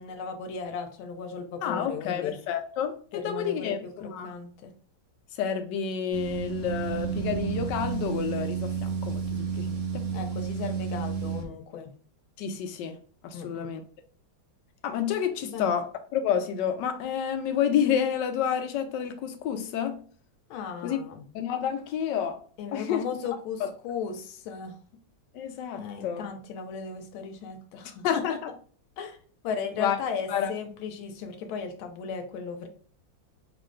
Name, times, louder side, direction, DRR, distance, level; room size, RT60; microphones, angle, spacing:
voice 1, 0.0-2.4 3.1-4.7 10.1-11.9 13.3-13.7 15.4-15.7 20.5-21.3 22.6-24.8 25.7-28.4 29.0-29.2 29.4-32.7, left 6 dB, 90° left, 1.4 m, -36 dB
voice 2, 1.6-4.3 5.4-10.1 12.4-13.0 13.2-13.8 14.8-20.0 20.8-21.0 21.3-22.4 22.7-23.0 23.6-23.7 25.3-26.2 28.0-28.3 29.8-30.0 30.3-30.5, left 8 dB, 75° left, 1.1 m, -29 dB
sound 1, 6.1-11.5, right 7 dB, 45° right, 1.2 m, -31 dB
3.7 x 2.5 x 3.1 m
omnidirectional pair, 2.1 m